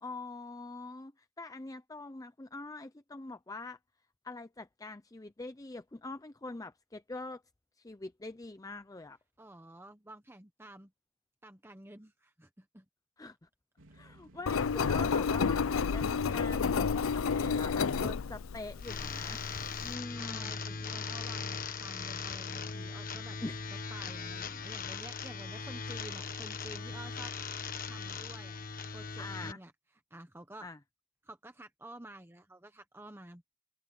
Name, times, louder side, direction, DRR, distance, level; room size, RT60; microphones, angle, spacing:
voice 1, 0.0-3.8 4.2-7.4 7.8-9.2 13.2-13.5 13.9-19.4 19.8-20.5 23.4-23.6 29.2-29.6 30.6-30.8, left 2 dB, 15° left, 0.5 m, -44 dB
voice 2, 9.4-10.9 11.4-12.8 20.1-23.4 23.9-27.3 27.8-28.6 28.9-29.7 30.1-30.7 31.2-33.4, right 1 dB, 10° right, 1.0 m, -51 dB
sound 1, 13.8-28.5, right 1 dB, 75° right, 3.9 m, -64 dB
Engine, 14.5-19.9, left 5 dB, 80° left, 0.5 m, -30 dB
sound 2, 18.8-29.5, left 5 dB, 45° left, 1.4 m, -39 dB
head